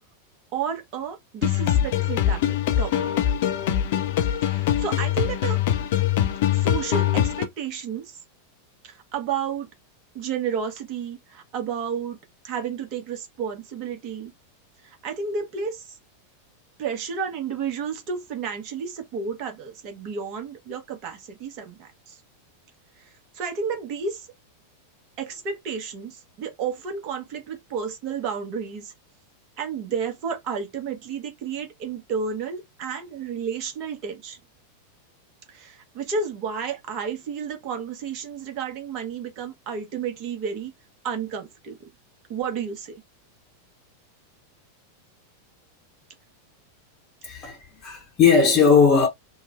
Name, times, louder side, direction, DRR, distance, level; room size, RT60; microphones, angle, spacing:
voice 1, 0.5-3.1 4.4-5.6 6.5-8.2 8.8-9.7 10.1-12.2 12.4-14.3 14.8-16.0 16.8-22.2 23.0-23.1 23.3-24.3 25.2-28.9 29.6-34.4 35.5-40.7 41.0-41.8 42.3-43.0, right 6 dB, 40° right, 0.9 m, -31 dB
sound 1, 1.4-7.5, left 11 dB, 50° left, 0.5 m, -23 dB
voice 2, 47.2-49.1, left 5 dB, 30° left, 0.8 m, -18 dB
2.9 x 2.2 x 2.4 m
figure-of-eight pair, 90°, 0 cm